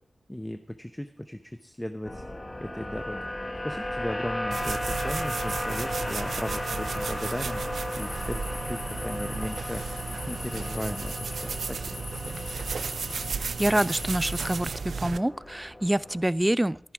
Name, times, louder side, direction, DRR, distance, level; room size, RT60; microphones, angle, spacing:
voice 1, 0.3-2.2 2.6-3.3 3.6-12.0, left 1 dB, 10° left, 9 dB, 0.8 m, -37 dB
sound 1, 2.0-16.2, left 1 dB, 30° left, 2.6 m, -36 dB
sound 2, 4.5-15.2, right 5 dB, 85° right, 0.4 m, -34 dB
sound 3, 7.9-14.6, left 3 dB, 85° left, 3.3 m, -41 dB
voice 2, 13.4-16.8, right 1 dB, 15° right, 20 dB, 0.4 m, -26 dB
14.0 x 11.0 x 4.8 m, 0.63 s
cardioid pair, 45°, 0 cm